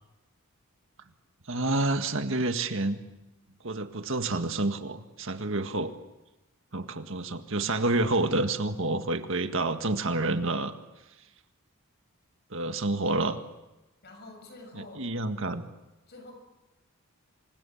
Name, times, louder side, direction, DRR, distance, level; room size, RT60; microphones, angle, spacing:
voice 1, 1.5-3.0 3.6-5.9 6.7-10.7 12.5-13.4 14.7-15.6, right 2 dB, 65° right, 7 dB, 1.8 m, -28 dB
voice 2, 14.0-15.0 16.1-16.3, left 2 dB, 50° left, 5 dB, 6.9 m, -47 dB
29.0 x 25.5 x 7.2 m, 1.0 s
head